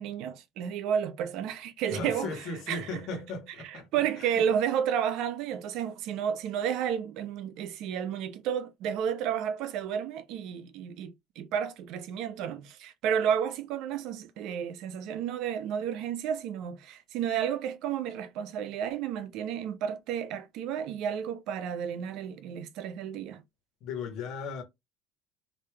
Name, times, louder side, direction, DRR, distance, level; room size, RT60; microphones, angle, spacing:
voice 1, 0.0-3.0 3.6-23.4, right 8 dB, 65° right, 0.7 m, -32 dB
voice 2, 1.9-4.3 23.8-24.6, left 3 dB, 60° left, 1.4 m, -37 dB
3.4 x 2.8 x 3.4 m
cardioid pair, 140°, 0 cm